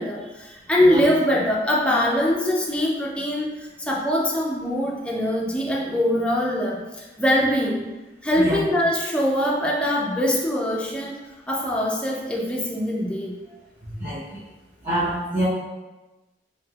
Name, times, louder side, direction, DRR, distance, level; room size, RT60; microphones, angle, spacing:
voice 1, 0.0-7.8 8.2-11.2 11.5-13.3, equal, 5° left, -3 dB, 0.3 m, -23 dB
voice 2, 14.8-15.4, right 1 dB, 30° right, -12 dB, 0.8 m, -25 dB
3.2 x 2.8 x 2.3 m, 1.1 s
head